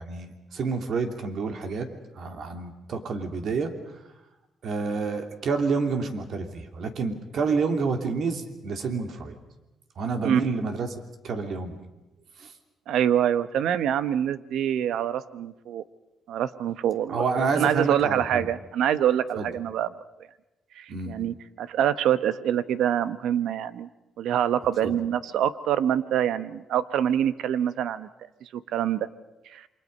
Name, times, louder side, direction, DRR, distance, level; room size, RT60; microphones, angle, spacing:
voice 1, 0.0-1.9 2.1-4.0 4.6-9.4 10.0-10.9 11.2-11.8 12.4-12.5 17.1-18.5 19.4-19.5 20.9-21.1 24.8-25.0, right 4 dB, 65° right, 5 dB, 2.9 m, -28 dB
voice 2, 12.9-15.8 16.3-17.2 17.5-19.9 20.8-23.9 24.2-28.1 28.4-29.1 29.5-29.7, right 10 dB, 85° right, 14 dB, 0.9 m, -25 dB
28.0 x 24.5 x 5.4 m, 0.96 s
cardioid pair, 100°, 0 cm